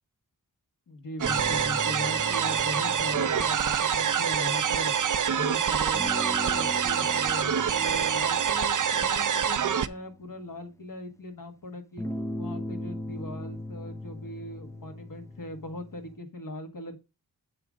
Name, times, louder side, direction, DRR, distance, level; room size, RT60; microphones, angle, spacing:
voice 1, 0.9-4.9 5.3-12.0 12.4-17.0, left 1 dB, 60° left, 5 dB, 1.7 m, -39 dB
sound 1, 1.2-5.2 5.9-11.0 12.0-16.2, left 1 dB, 10° left, 0.5 m, -40 dB
sound 2, 1.2-9.9, right 8 dB, 55° right, 0.5 m, -26 dB
7.6 x 3.8 x 6.3 m, 0.28 s
wide cardioid pair, 80°, 38 cm